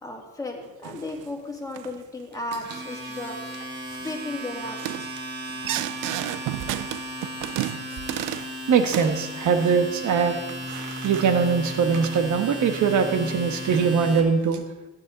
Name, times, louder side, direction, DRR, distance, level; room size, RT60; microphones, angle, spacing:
voice 1, 0.0-3.4 4.0-5.1, left 2 dB, 10° left, 0 dB, 2.6 m, -35 dB
sound 1, 0.8-1.3 1.7-2.0 2.5-2.9 3.3-3.6 3.9-4.2 4.7-8.6 8.9-10.0 10.5-11.5, right 15 dB, 85° right, 0.5 m, -33 dB
Domestic sounds home sounds, 2.3-14.2, equal, 35° right, 3.3 m, -35 dB
voice 2, 8.7-10.4 11.0-14.6, right 6 dB, 70° right, 8 dB, 1.4 m, -22 dB
14.5 x 9.8 x 4.1 m, 1.1 s
cardioid pair, 90°, 30 cm